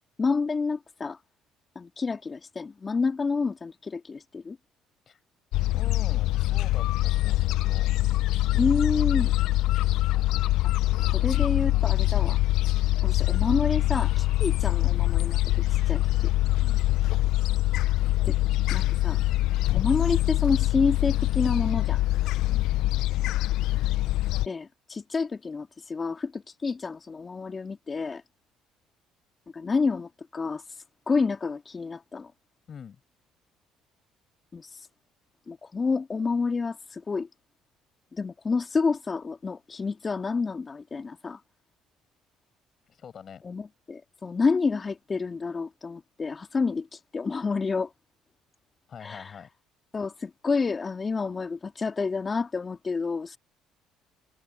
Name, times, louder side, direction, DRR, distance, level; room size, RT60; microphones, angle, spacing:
voice 1, 0.2-1.2 1.7-4.6 8.5-9.3 10.6-12.4 13.0-15.4 15.7-16.3 18.2-18.3 18.7-19.2 19.7-22.0 24.4-28.2 29.5-32.3 34.5-34.9 35.5-37.3 38.1-41.4 43.4-47.9 49.0-49.4 49.9-53.4, left 4 dB, 30° left, 2.7 m, -29 dB
Gull seagull, 5.5-24.5, left 16 dB, 70° left, 0.7 m, -24 dB
voice 2, 5.7-7.9 16.6-16.8 22.4-22.7 32.7-33.0 42.9-43.4 48.9-49.5, left 7 dB, 50° left, 6.2 m, -45 dB
supercardioid pair, 65°, 0 cm